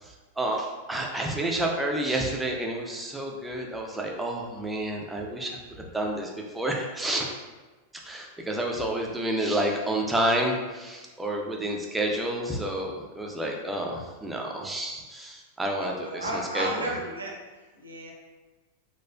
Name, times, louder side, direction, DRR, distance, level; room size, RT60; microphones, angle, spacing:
voice 1, 0.0-7.3 8.0-16.9, right 1 dB, 10° right, 0 dB, 0.5 m, -30 dB
voice 2, 15.7-17.3 17.7-18.1, right 1 dB, 80° right, -2 dB, 0.7 m, -33 dB
4.1 x 2.5 x 2.3 m, 1.2 s
figure-of-eight pair, 90°, 0 cm